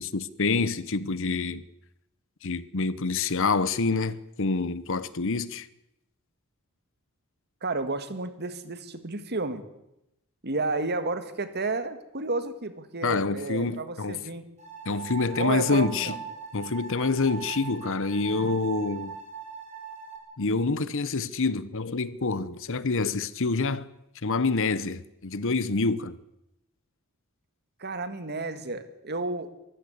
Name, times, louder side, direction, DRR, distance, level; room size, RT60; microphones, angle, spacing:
voice 1, 0.0-1.6 2.4-5.7 13.0-14.2 14.8-16.1 16.5-19.2 20.4-23.9 24.2-26.2, left 4 dB, 60° left, 1.0 m, -27 dB
voice 2, 7.6-9.6 10.4-14.5 15.4-16.2 27.8-29.5, right 3 dB, 50° right, 1.9 m, -31 dB
sound 1, 14.6-20.2, right 7 dB, 30° right, 5.5 m, -40 dB
23.0 x 15.0 x 8.1 m
head